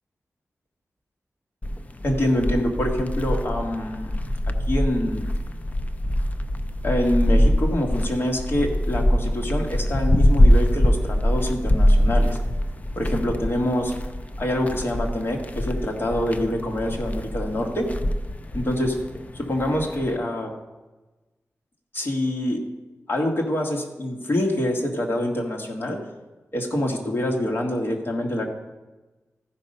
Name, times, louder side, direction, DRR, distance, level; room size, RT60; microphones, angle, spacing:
sound 1, 1.6-20.2, equal, 30° left, 0.5 m, -23 dB
voice 1, 2.0-4.1 4.7-5.3 6.8-12.4 12.9-13.9 14.4-17.9 18.5-19.0 19.3-20.5 21.9-22.6 23.1-26.0 26.5-28.5, left 1 dB, 45° left, 1 dB, 1.7 m, -25 dB
14.0 x 5.4 x 5.4 m, 1.1 s
wide cardioid pair, 130°, 5 cm